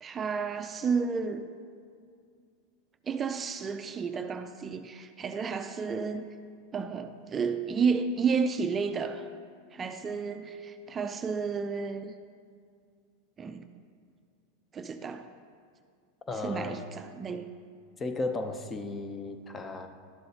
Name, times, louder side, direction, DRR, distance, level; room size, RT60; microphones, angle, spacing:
voice 1, 0.0-1.4 3.1-6.2 6.7-9.3 9.7-12.1 13.4-13.7 14.7-15.3 16.4-17.5, right 5 dB, 25° right, 9 dB, 0.4 m, -31 dB
voice 2, 16.3-16.9 18.0-19.9, left 2 dB, 25° left, 8 dB, 0.6 m, -35 dB
11.5 x 7.6 x 2.8 m, 2.2 s
hypercardioid pair, 100°, 0 cm